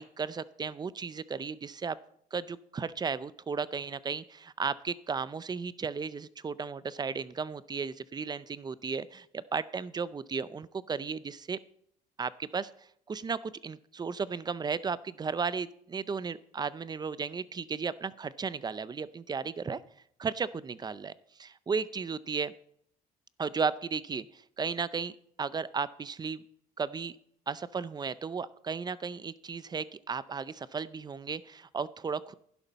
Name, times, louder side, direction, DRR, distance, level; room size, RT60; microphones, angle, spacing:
voice 1, 0.0-2.0 2.3-11.6 12.2-12.7 13.1-19.8 20.2-21.1 21.4-22.5 23.4-25.1 25.4-26.4 26.8-27.2 27.5-32.3, right 5 dB, 25° right, 17 dB, 0.5 m, -34 dB
11.5 x 11.0 x 4.1 m, 0.68 s
cardioid pair, 110°, 17 cm